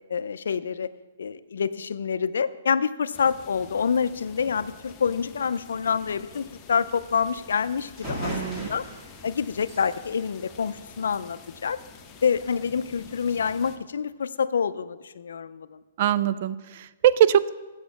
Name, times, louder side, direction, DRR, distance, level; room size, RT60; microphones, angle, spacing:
voice 1, 0.1-0.9 1.2-8.9 9.2-11.8 12.2-15.8, left 6 dB, 85° left, 15 dB, 0.4 m, -27 dB
sound 1, 3.1-13.8, left 5 dB, 20° left, 0.7 m, -48 dB
sound 2, 7.6-7.7 8.0-11.4, equal, 15° right, 1.9 m, -38 dB
voice 2, 8.2-8.7 16.0-17.5, right 10 dB, 45° right, 16 dB, 0.3 m, -22 dB
7.8 x 6.4 x 7.0 m, 1.2 s
hypercardioid pair, 160°, 0 cm